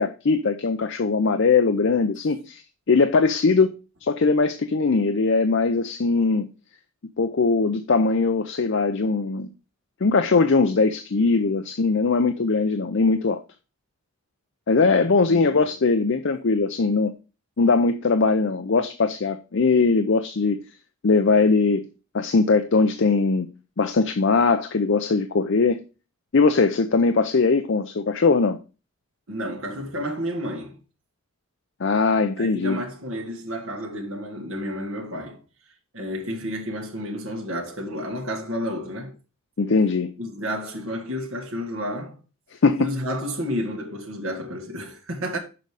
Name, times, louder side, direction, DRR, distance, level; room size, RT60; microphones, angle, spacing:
voice 1, 0.0-2.6 2.9-3.7 4.0-6.5 7.2-9.5 10.0-13.4 14.7-17.1 17.6-20.6 21.0-21.9 22.1-23.5 23.8-25.8 26.3-28.6 31.8-32.8 39.6-40.1 42.6-42.8, left 4 dB, 55° left, 0.5 m, -20 dB
voice 2, 15.3-15.7 29.3-30.8 32.4-35.4 35.9-39.1 40.2-42.2 42.8-45.4, equal, 65° right, 1.9 m, -31 dB
6.8 x 5.2 x 4.8 m
head